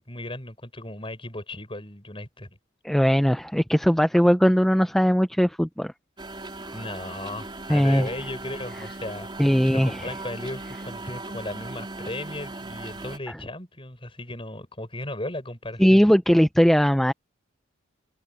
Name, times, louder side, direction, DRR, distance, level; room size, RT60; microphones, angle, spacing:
voice 1, 0.0-2.6 6.7-16.0, left 1 dB, 25° left, 6.9 m, -36 dB
voice 2, 2.8-5.9 7.7-8.1 9.4-10.1 15.8-17.1, equal, ahead, 0.5 m, -19 dB
sound 1, 6.2-13.2, right 2 dB, 25° right, 4.1 m, -38 dB
head